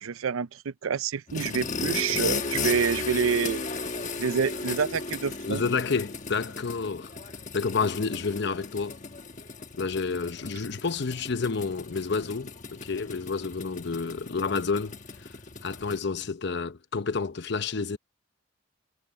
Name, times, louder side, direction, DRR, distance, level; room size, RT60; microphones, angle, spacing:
voice 1, 0.0-3.6 4.2-5.6, right 6 dB, 90° right, 0.5 m, -27 dB
sound 1, 1.3-16.0, left 4 dB, 35° left, 1.3 m, -36 dB
voice 2, 5.4-7.1 7.5-9.0 9.7-15.3 15.6-18.0, left 4 dB, 55° left, 0.8 m, -30 dB
head